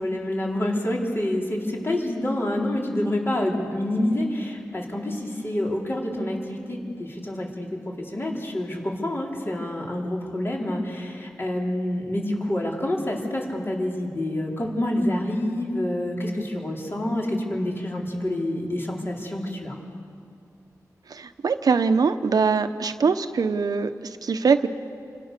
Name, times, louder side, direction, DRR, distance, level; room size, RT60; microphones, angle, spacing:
voice 1, 0.0-7.7 8.0-19.8, left 1 dB, 40° left, -2 dB, 5.0 m, -27 dB
voice 2, 21.1-24.7, right 5 dB, 80° right, 9 dB, 1.0 m, -22 dB
29.0 x 25.5 x 6.8 m, 2.3 s
wide cardioid pair, 90°, 6 cm